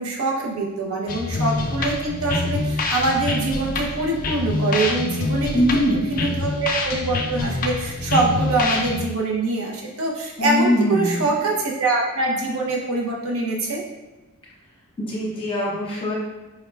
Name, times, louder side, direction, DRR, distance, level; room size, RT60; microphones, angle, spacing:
voice 1, 0.0-13.8, right 2 dB, 70° right, -1 dB, 0.6 m, -24 dB
sound 1, 1.1-9.1, left 3 dB, 40° left, 0.3 m, -26 dB
voice 2, 5.5-6.1 10.4-11.3 15.1-16.2, equal, 25° left, -5 dB, 0.7 m, -22 dB
4.8 x 2.2 x 3.3 m, 1.1 s
head